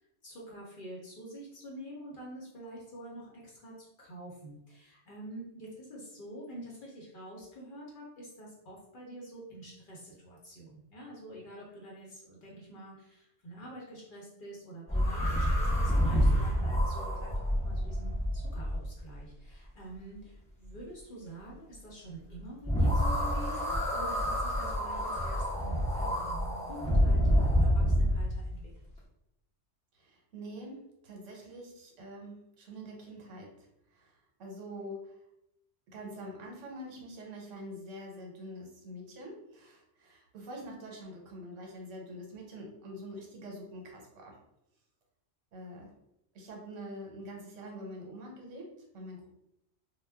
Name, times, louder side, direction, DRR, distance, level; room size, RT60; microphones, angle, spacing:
voice 1, 0.2-28.9, right 1 dB, 50° left, -4 dB, 0.7 m, -47 dB
sound 1, 14.9-19.1 22.6-28.3, equal, 10° left, 0.3 m, -28 dB
voice 2, 29.9-33.5 33.9-35.2 35.9-44.4 45.5-45.9 46.3-49.3, equal, 85° right, -1 dB, 1.1 m, -45 dB
2.2 x 2.1 x 3.3 m, 0.82 s
omnidirectional pair, 1.3 m